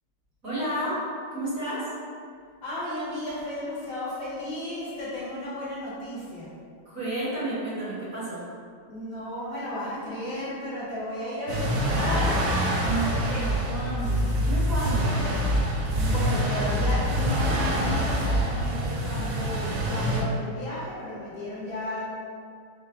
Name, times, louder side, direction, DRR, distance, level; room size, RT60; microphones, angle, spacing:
voice 1, 0.4-1.0 1.3-1.9 6.8-8.4 12.8-15.1, right 1 dB, 45° right, -10 dB, 1.4 m, -31 dB
voice 2, 2.6-6.5 8.9-12.5 15.9-22.0, left 1 dB, 60° left, -8 dB, 1.6 m, -34 dB
sound 1, 11.5-20.2, equal, 65° right, 1.0 m, -25 dB
5.8 x 2.1 x 3.7 m, 2.2 s
omnidirectional pair, 2.3 m